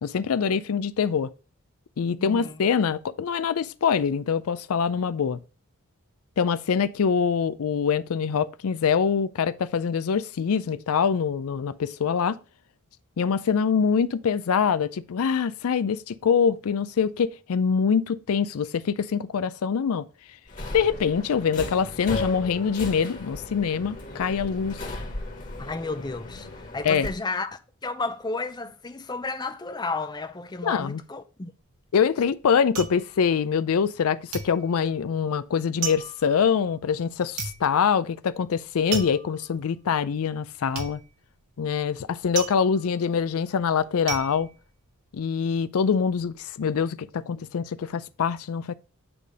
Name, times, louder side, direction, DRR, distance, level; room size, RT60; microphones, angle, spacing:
voice 1, 0.0-1.3 2.0-5.4 6.4-12.4 13.2-20.1 20.7-24.8 26.8-27.1 30.6-31.0 31.9-41.0 41.6-44.5 45.1-48.7, left 6 dB, 75° left, 0.4 m, -24 dB
voice 2, 2.2-2.6 25.6-31.5, left 3 dB, 20° left, 0.5 m, -32 dB
Subway metro underground, 20.5-27.1, left 2 dB, 35° left, 1.9 m, -36 dB
sound 1, 31.6-34.0 34.3-45.4 45.8-46.4, right 6 dB, 90° right, 1.7 m, -36 dB
8.8 x 3.3 x 5.1 m
head